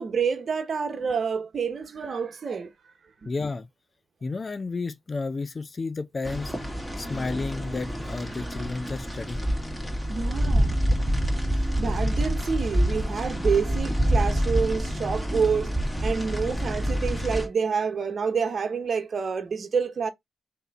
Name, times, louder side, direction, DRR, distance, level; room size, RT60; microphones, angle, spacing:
voice 1, 0.0-2.7 3.2-3.3 7.0-7.3 10.1-10.8 11.8-15.7 16.0-20.1, right 6 dB, 60° right, 1.0 m, -28 dB
voice 2, 3.3-3.7 4.2-6.5 7.0-9.5, left 3 dB, 40° left, 0.6 m, -32 dB
sound 1, 6.2-17.5, equal, 10° left, 1.9 m, -27 dB
3.3 x 2.9 x 4.1 m
cardioid pair, 55°, 0 cm